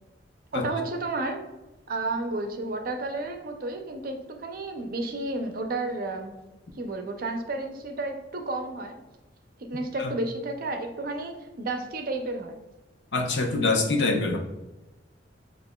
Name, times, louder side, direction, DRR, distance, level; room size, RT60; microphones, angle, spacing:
voice 1, 0.5-1.4 1.9-6.3 6.8-9.0 9.6-12.6, right 2 dB, 50° right, 4 dB, 0.6 m, -32 dB
voice 2, 13.1-14.4, left 3 dB, 70° left, 2 dB, 0.7 m, -24 dB
6.9 x 2.5 x 2.3 m, 1.0 s
head